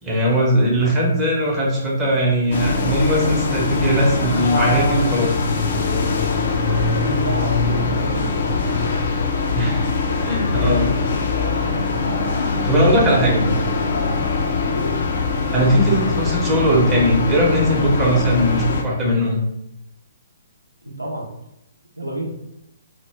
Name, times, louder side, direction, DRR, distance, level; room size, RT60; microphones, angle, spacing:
voice 1, 0.0-5.4 9.5-9.9 10.2-10.9 12.6-13.4 15.5-19.4, equal, 15° right, -4 dB, 0.7 m, -19 dB
sound 1, 2.5-18.8, left 4 dB, 50° left, 0.4 m, -22 dB
voice 2, 6.9-9.0 10.1-10.9 14.7-14.9 20.8-21.3 22.0-22.3, right 1 dB, 85° right, -2 dB, 0.6 m, -29 dB
2.1 x 2.0 x 3.2 m, 0.84 s
figure-of-eight pair, 125°, 0 cm